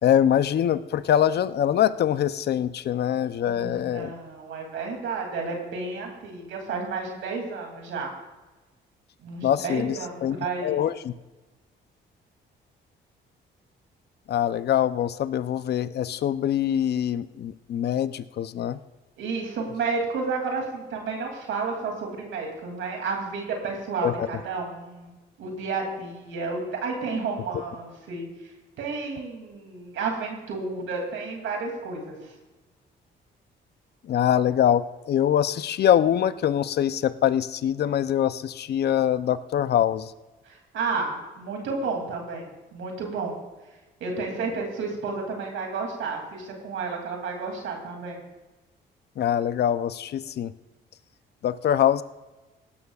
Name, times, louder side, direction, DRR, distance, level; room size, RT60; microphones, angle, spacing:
voice 1, 0.0-4.1 9.4-11.1 14.3-18.8 24.0-24.3 34.0-40.1 49.2-50.5 51.4-52.0, left 10 dB, 55° left, 13 dB, 0.6 m, -24 dB
voice 2, 3.4-8.1 9.2-10.8 19.2-25.1 25.4-28.3 28.8-32.3 40.5-43.4 44.0-48.2, right 4 dB, 80° right, 1 dB, 2.8 m, -31 dB
18.0 x 12.5 x 2.4 m, 1.1 s
cardioid pair, 90°, 20 cm